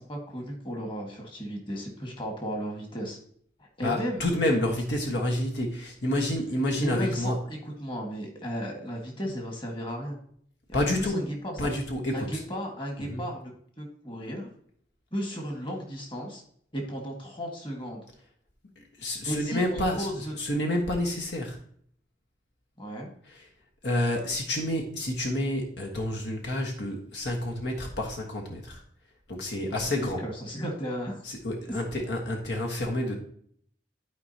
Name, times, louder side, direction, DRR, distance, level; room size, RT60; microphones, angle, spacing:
voice 1, 0.0-3.2 3.6-4.2 6.8-10.2 10.7-11.6 12.1-13.5 13.8-14.5 15.1-16.4 16.7-18.0 19.2-20.3 22.8-23.1 29.7-31.2, equal, 30° left, 0 dB, 1.7 m, -35 dB
voice 2, 3.8-7.4 10.7-11.2 11.6-12.4 13.0-13.2 18.8-20.1 20.4-21.6 23.3-23.4 23.8-28.8 29.3-30.2 31.2-33.1, left 1 dB, 70° left, 0 dB, 1.4 m, -29 dB
12.0 x 4.7 x 2.8 m, 0.63 s
head